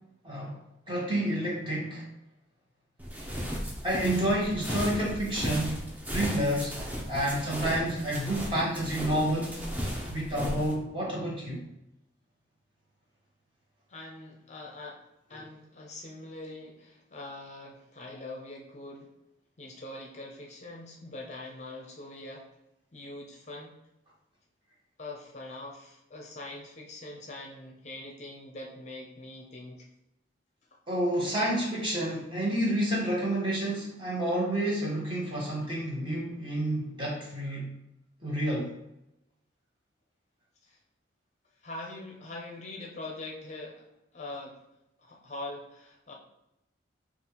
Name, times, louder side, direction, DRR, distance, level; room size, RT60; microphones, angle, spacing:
voice 1, 0.2-0.6 0.9-2.0 3.8-6.8 7.1-9.6 10.1-11.6 15.3-15.4 30.9-37.7 38.2-38.7, right 1 dB, 25° right, -5 dB, 1.2 m, -29 dB
sound 1, 3.0-10.7, equal, 10° right, 0.5 m, -35 dB
voice 2, 13.9-15.0 15.3-19.1 19.6-22.5 22.9-23.7 25.0-29.9 40.6-40.8 41.6-44.6 45.0-46.1, left 2 dB, 40° left, 0 dB, 0.5 m, -43 dB
5.2 x 2.4 x 2.9 m, 0.86 s
head